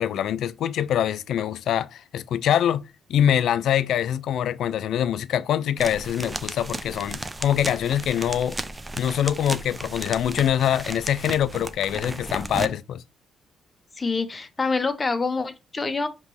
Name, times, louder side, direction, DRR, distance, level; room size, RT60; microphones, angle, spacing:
voice 1, 0.0-8.6 9.0-13.0, left 10 dB, 75° left, 0.3 m, -24 dB
sound 1, 5.8-12.7, right 2 dB, 15° right, 0.5 m, -34 dB
voice 2, 14.0-16.1, left 4 dB, 25° left, 0.7 m, -26 dB
5.1 x 3.0 x 3.1 m
cardioid pair, 90°, 0 cm